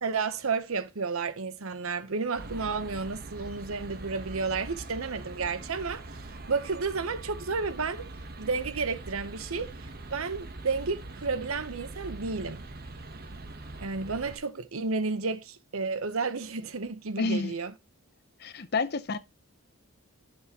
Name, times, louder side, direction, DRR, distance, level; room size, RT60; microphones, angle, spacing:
voice 1, 0.0-8.0 8.4-12.6 13.8-17.7, right 4 dB, 75° right, 0.9 m, -32 dB
sound 1, 2.3-14.4, right 2 dB, 45° right, 1.0 m, -43 dB
voice 2, 17.2-17.5 18.4-19.2, left 3 dB, 45° left, 0.7 m, -29 dB
11.5 x 6.4 x 2.9 m
head